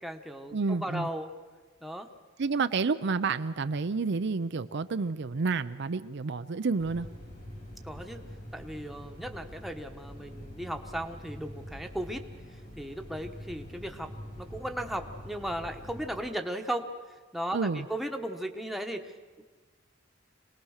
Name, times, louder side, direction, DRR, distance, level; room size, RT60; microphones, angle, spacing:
voice 1, 0.0-1.3 1.8-2.1 7.8-8.2 8.5-12.3 12.8-16.9 17.3-19.4, right 1 dB, ahead, 4 dB, 1.2 m, -36 dB
voice 2, 0.5-1.1 2.4-7.1 17.5-17.9, right 4 dB, 60° right, 11 dB, 0.6 m, -29 dB
sound 1, 6.8-16.2, equal, 45° left, 4.0 m, -45 dB
25.5 x 19.0 x 6.5 m, 1.4 s
head